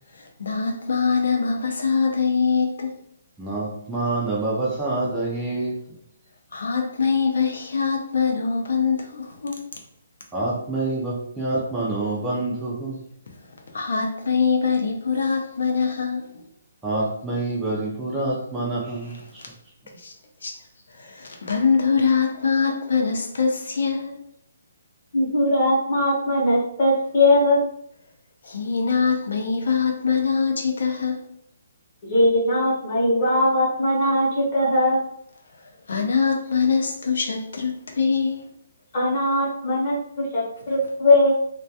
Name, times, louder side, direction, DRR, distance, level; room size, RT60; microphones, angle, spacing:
voice 1, 0.1-2.9 6.5-9.6 13.7-16.4 19.9-20.1 20.4-20.6 20.9-24.2 28.4-31.2 35.6-38.5, left 5 dB, 65° left, 2 dB, 0.4 m, -23 dB
voice 2, 3.4-5.7 10.3-13.0 16.8-19.2, right 2 dB, 5° right, -7 dB, 0.3 m, -26 dB
voice 3, 25.1-27.6 32.1-35.1 38.9-41.3, left 1 dB, 30° left, -4 dB, 0.7 m, -20 dB
2.2 x 2.1 x 2.7 m, 0.69 s
hypercardioid pair, 175°, 0 cm